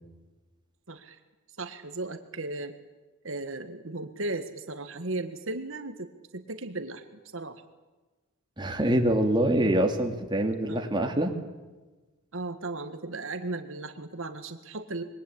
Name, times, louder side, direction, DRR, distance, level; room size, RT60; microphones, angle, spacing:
voice 1, 0.9-1.2 1.6-2.8 3.2-6.1 6.3-7.6 10.7-10.9 12.3-15.0, right 2 dB, 65° right, 8 dB, 1.7 m, -36 dB
voice 2, 8.6-11.3, right 1 dB, 20° right, 3 dB, 2.6 m, -25 dB
26.5 x 22.0 x 8.7 m, 1.2 s
head